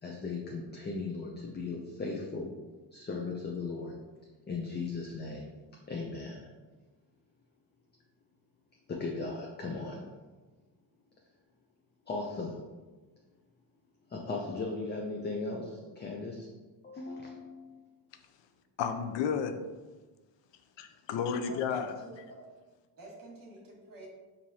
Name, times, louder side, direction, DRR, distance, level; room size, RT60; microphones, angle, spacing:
voice 1, 0.0-2.5 2.9-3.9 4.5-5.5 5.9-6.5 8.9-10.1 12.1-12.6 14.1-16.5 16.8-17.8, left 3 dB, 25° left, -1 dB, 0.5 m, -37 dB
voice 2, 18.8-19.7 20.8-21.9, left 6 dB, 80° left, 8 dB, 0.5 m, -32 dB
voice 3, 21.4-22.4 23.0-24.1, right 2 dB, 50° right, -2 dB, 1.4 m, -48 dB
4.6 x 2.7 x 2.8 m, 1.3 s
cardioid pair, 85°, 43 cm